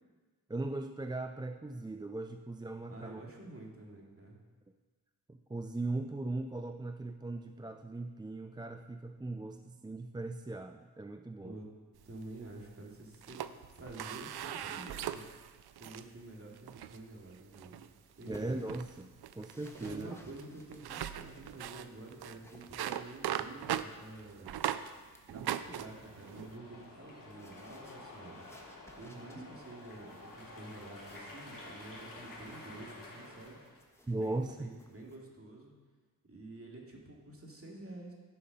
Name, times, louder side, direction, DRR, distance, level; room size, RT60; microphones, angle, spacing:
voice 1, 0.5-3.2 5.3-11.6 18.3-20.2 29.3-29.5 34.1-34.8, right 2 dB, 10° right, 6 dB, 0.4 m, -39 dB
voice 2, 2.9-4.4 11.4-11.7 12.0-13.4 13.7-15.2 15.8-17.8 18.2-18.6 19.8-24.7 25.3-28.4 29.0-33.6 34.1-35.7 36.3-38.1, right 2 dB, 35° right, -1 dB, 2.3 m, -49 dB
sound 1, 12.0-12.7 13.1-16.1 16.6-17.0 17.5-17.9 18.2-18.4 18.7-24.9 25.3-26.5, right 11 dB, 80° right, 0.5 m, -40 dB
sound 2, 17.5-35.2, left 1 dB, 5° left, 1.4 m, -62 dB
sound 3, 25.5-33.8, left 2 dB, 60° left, 2.3 m, -51 dB
10.5 x 5.8 x 5.3 m, 1.4 s
cardioid pair, 55°, 38 cm